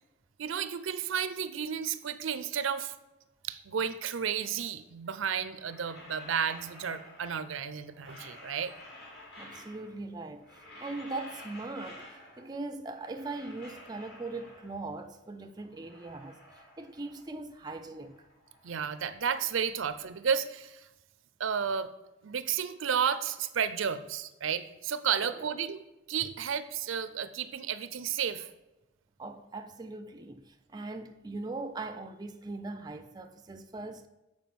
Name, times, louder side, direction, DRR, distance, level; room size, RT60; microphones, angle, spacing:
voice 1, 0.4-2.9 3.4-8.7 18.6-20.9 21.4-21.9 22.2-25.8 26.1-28.5, right 7 dB, 85° right, 0.5 m, -32 dB
sound 1, 5.4-7.6 7.9-10.0 10.3-12.6 12.8-14.9 15.4-17.4 17.7-19.9, left 1 dB, 55° left, 2.7 m, -51 dB
voice 2, 9.4-18.2 25.2-25.5 29.2-34.1, right 2 dB, 20° right, 0.4 m, -40 dB
7.2 x 4.8 x 5.9 m
head